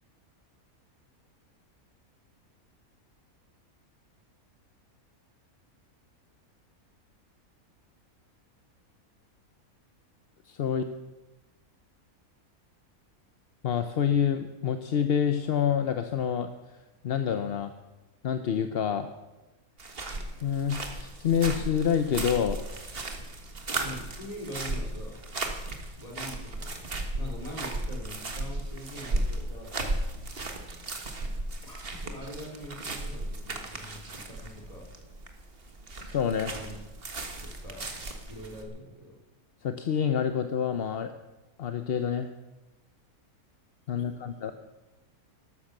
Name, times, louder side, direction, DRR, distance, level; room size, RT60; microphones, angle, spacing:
voice 1, 10.5-10.8 13.6-16.5 17.0-17.7 18.2-19.1 20.4-22.6 36.0-36.6 39.6-41.1 41.6-42.3 43.9-44.5, left 8 dB, 50° left, 9 dB, 0.8 m, -27 dB
sound 1, 19.8-38.6, right 2 dB, 40° right, 1.7 m, -35 dB
voice 2, 23.8-25.2 25.9-29.7 31.6-34.9 36.3-36.8 37.4-37.9 38.3-39.2 43.9-44.5, equal, 25° left, -1 dB, 3.3 m, -43 dB
13.5 x 12.5 x 6.6 m, 1.1 s
omnidirectional pair, 1.5 m